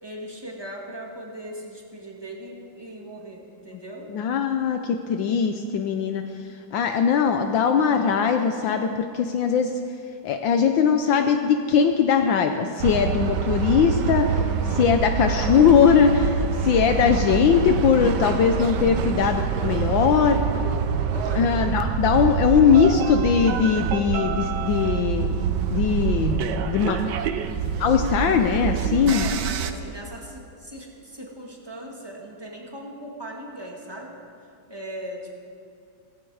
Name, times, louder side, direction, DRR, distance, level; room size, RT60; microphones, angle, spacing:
voice 1, 0.0-4.1 21.1-21.6 29.1-34.2 34.7-35.4, right 1 dB, 10° right, -1 dB, 1.7 m, -38 dB
voice 2, 4.1-6.2 6.7-9.8 10.2-20.4 21.4-26.4 26.7-27.0 27.8-29.3, left 7 dB, 70° left, 6 dB, 1.4 m, -20 dB
sound 1, 12.8-29.7, right 6 dB, 65° right, 1.2 m, -26 dB
16.0 x 16.0 x 4.8 m, 2.4 s
omnidirectional pair, 2.2 m